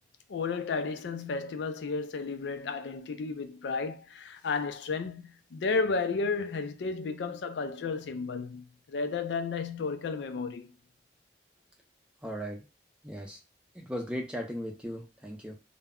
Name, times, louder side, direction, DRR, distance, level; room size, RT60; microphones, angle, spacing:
voice 1, 0.3-10.7, left 4 dB, 85° left, 0.4 m, -33 dB
voice 2, 12.2-12.6 13.0-13.4 13.7-15.5, equal, 5° right, 0.5 m, -37 dB
2.2 x 2.0 x 3.5 m
head